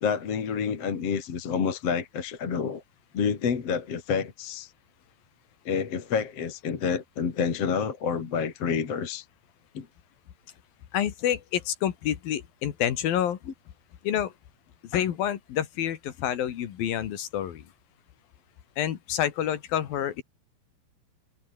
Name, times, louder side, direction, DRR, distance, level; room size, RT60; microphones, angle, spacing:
voice 1, 0.0-2.8 3.1-4.7 5.6-9.2 9.7-9.9, left 6 dB, 40° left, 3.1 m, -28 dB
voice 2, 10.9-13.4 14.0-14.3 14.8-17.6 18.8-20.2, left 10 dB, 65° left, 3.3 m, -28 dB
omnidirectional pair, 5.0 m